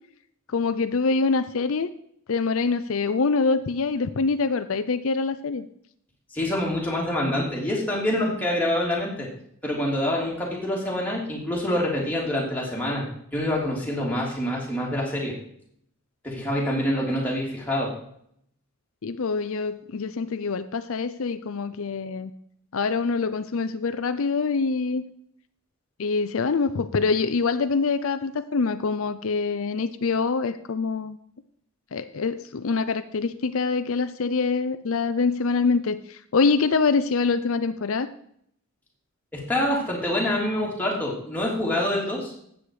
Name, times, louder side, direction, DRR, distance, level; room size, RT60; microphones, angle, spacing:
voice 1, 0.5-1.9 2.3-5.7 19.0-22.3 22.7-25.0 26.0-31.2 31.9-38.1, left 4 dB, 70° left, 11 dB, 0.6 m, -25 dB
voice 2, 6.3-9.3 9.6-13.0 13.3-15.3 16.2-17.9 39.3-42.3, left 1 dB, 10° left, -4 dB, 3.2 m, -26 dB
13.0 x 8.4 x 4.9 m, 0.69 s
head